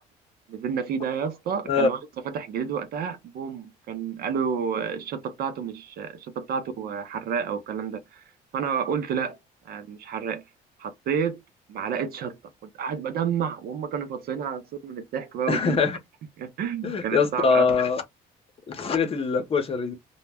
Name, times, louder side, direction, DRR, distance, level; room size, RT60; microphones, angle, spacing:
voice 1, 0.5-2.0 2.2-8.2 8.5-9.4 9.6-10.4 10.8-11.4 11.7-12.4 12.8-15.8 16.4-17.8, right 7 dB, 65° right, 0.6 m, -30 dB
voice 2, 15.5-16.0 16.8-18.0 18.7-19.9, left 5 dB, 35° left, 0.7 m, -23 dB
2.2 x 2.1 x 3.4 m
cardioid pair, 110°, 17 cm